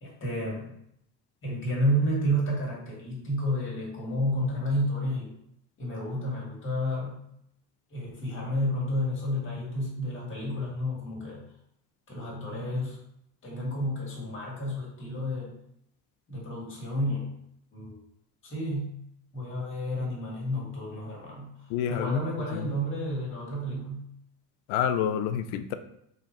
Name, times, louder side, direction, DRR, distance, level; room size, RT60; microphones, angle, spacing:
voice 1, 0.0-0.7 1.4-5.3 5.8-7.2 7.9-11.5 12.1-13.0 13.4-15.5 16.3-17.3 17.7-18.0 18.4-18.9 19.3-24.0, equal, 35° left, -3 dB, 1.7 m, -31 dB
voice 2, 21.7-22.2 22.5-22.7 24.7-25.7, left 9 dB, 85° left, 9 dB, 0.5 m, -28 dB
3.8 x 2.8 x 4.3 m, 0.75 s
cardioid pair, 130°, 36 cm